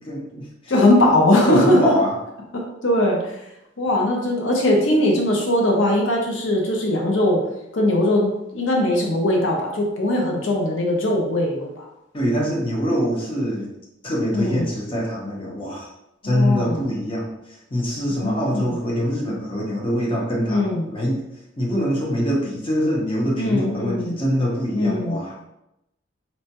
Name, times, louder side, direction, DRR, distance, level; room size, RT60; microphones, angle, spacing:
voice 1, 0.0-0.7 1.4-2.1 12.1-13.7 14.0-15.9 16.2-17.3 17.7-21.2 21.6-25.3, equal, 30° left, -3 dB, 0.8 m, -24 dB
voice 2, 0.7-1.9 2.5-3.2 3.8-7.4 7.7-11.9 14.3-14.7 16.2-16.9 18.1-18.8 20.5-20.9 23.4-24.2 24.7-25.2, left 1 dB, 75° left, 0 dB, 0.7 m, -20 dB
4.1 x 2.2 x 2.8 m, 0.85 s
head